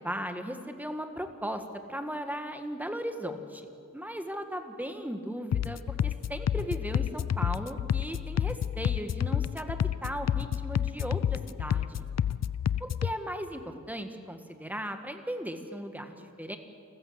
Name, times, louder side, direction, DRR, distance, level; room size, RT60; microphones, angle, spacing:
voice 1, 0.0-1.6 1.9-3.7 3.9-12.1 12.8-16.6, equal, 5° right, 6 dB, 1.7 m, -37 dB
sound 1, 5.5-13.1, left 9 dB, 55° left, 0.5 m, -29 dB
29.0 x 14.5 x 8.1 m, 2.4 s
wide cardioid pair, 135°, 32 cm